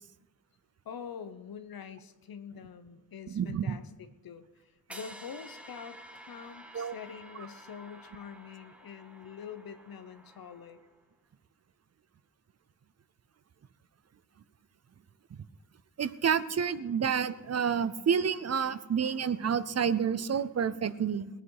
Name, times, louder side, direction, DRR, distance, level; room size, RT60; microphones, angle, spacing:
voice 1, 0.8-10.8, left 7 dB, 85° left, 10 dB, 1.0 m, -45 dB
voice 2, 3.3-3.8 6.7-6.9 16.0-21.3, right 7 dB, 45° right, 15 dB, 0.6 m, -29 dB
sound 1, 4.9-11.0, equal, 5° right, 1.0 m, -51 dB
20.5 x 8.9 x 4.8 m, 1.1 s
wide cardioid pair, 155°, 35 cm